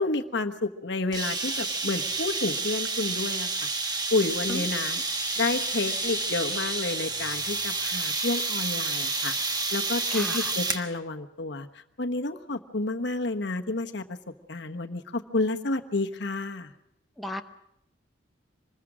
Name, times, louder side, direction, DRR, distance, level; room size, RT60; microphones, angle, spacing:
voice 1, 0.0-3.5 4.1-5.0 5.3-9.3 9.7-11.7 12.0-14.2 14.5-16.7, left 3 dB, 65° left, 6 dB, 1.2 m, -30 dB
sound 1, 1.1-10.9, right 3 dB, 20° right, 1.5 m, -29 dB
voice 2, 10.1-10.5 17.2-17.4, left 1 dB, ahead, 4 dB, 0.8 m, -34 dB
25.5 x 21.0 x 6.2 m, 0.79 s
head